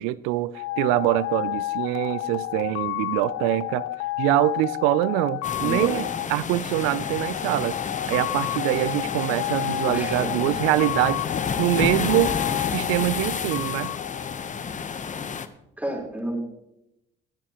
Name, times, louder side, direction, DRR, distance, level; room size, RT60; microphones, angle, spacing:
voice 1, 0.0-3.9 4.2-7.8 8.1-11.2 11.6-12.4 12.7-13.9, right 16 dB, 90° right, 0.4 m, -24 dB
sound 1, 0.5-15.0, left 17 dB, 80° left, 0.4 m, -31 dB
sound 2, 5.4-15.5, left 6 dB, 40° left, 0.9 m, -30 dB
voice 2, 5.6-5.9 9.9-10.4 15.8-16.4, right 1 dB, 10° right, 4.0 m, -31 dB
21.5 x 9.4 x 3.0 m
supercardioid pair, 70°, 20 cm